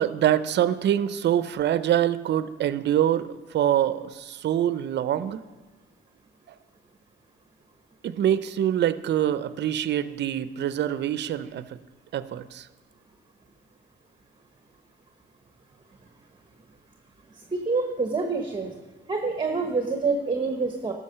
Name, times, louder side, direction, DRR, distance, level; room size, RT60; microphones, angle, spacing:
voice 1, 0.0-5.4 8.0-11.8 12.1-12.7, right 11 dB, 60° right, 14 dB, 0.6 m, -25 dB
voice 2, 17.5-18.7 19.1-20.9, right 4 dB, 25° right, 4 dB, 1.1 m, -26 dB
12.0 x 6.3 x 6.6 m, 1.3 s
cardioid pair, 90°, 20 cm